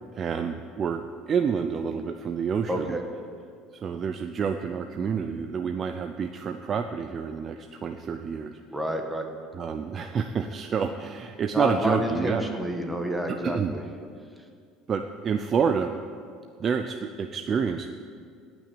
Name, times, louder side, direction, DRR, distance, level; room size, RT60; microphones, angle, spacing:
voice 1, 0.1-2.9 3.7-8.6 9.5-12.5 13.4-13.8 14.9-15.9 16.6-17.9, right 6 dB, 30° right, 6 dB, 0.6 m, -28 dB
voice 2, 2.7-3.0 8.7-9.3 11.5-13.8, equal, 5° right, 3 dB, 1.4 m, -29 dB
17.5 x 6.2 x 9.7 m, 2.2 s
cardioid pair, 150°, 0 cm